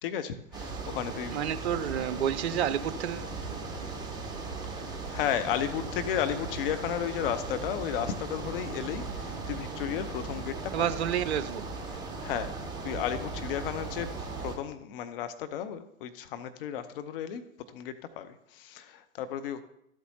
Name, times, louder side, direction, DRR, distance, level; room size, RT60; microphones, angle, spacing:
voice 1, 0.0-1.4 5.1-10.9 11.9-12.6 12.8-17.4 17.7-19.6, left 9 dB, 40° left, 0.8 m, -34 dB
sound 1, 0.5-14.6, right 3 dB, 10° right, 1.2 m, -37 dB
voice 2, 1.3-3.3 10.7-11.6, right 9 dB, 50° right, 0.5 m, -29 dB
13.0 x 8.2 x 2.8 m
figure-of-eight pair, 105°, 42 cm